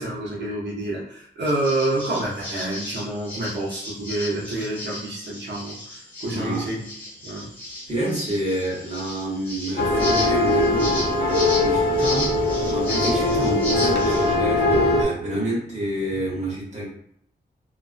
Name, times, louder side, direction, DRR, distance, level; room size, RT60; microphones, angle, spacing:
voice 1, 0.0-6.9 7.2-7.5 16.1-16.2, right 1 dB, 90° right, -4 dB, 0.7 m, -28 dB
sound 1, 1.5-14.3, left 1 dB, 10° left, 1.0 m, -34 dB
voice 2, 6.3-6.6 7.9-12.3 12.7-16.9, right 1 dB, 45° right, -6 dB, 0.9 m, -28 dB
sound 2, 9.8-15.0, left 2 dB, 70° left, 0.5 m, -21 dB
2.3 x 2.2 x 2.4 m, 0.67 s
wide cardioid pair, 160°, 18 cm